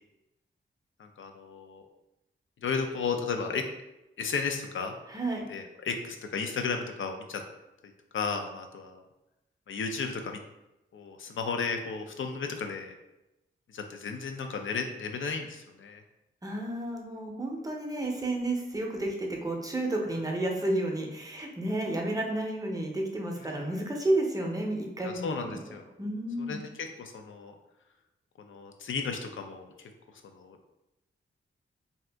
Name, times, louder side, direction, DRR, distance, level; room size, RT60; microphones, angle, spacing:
voice 1, 1.0-1.8 2.6-3.6 4.2-5.0 5.5-7.4 8.1-9.0 9.7-10.4 10.9-12.9 13.7-16.0 20.1-20.2 23.4-23.8 25.0-25.9 26.5-27.5 28.4-29.7 30.2-30.6, left 5 dB, 70° left, 4 dB, 0.4 m, -34 dB
voice 2, 16.4-25.2 25.4-25.6 26.0-26.6, right 1 dB, 15° right, 0 dB, 0.6 m, -31 dB
2.7 x 2.4 x 3.3 m, 0.94 s
wide cardioid pair, 80°, 21 cm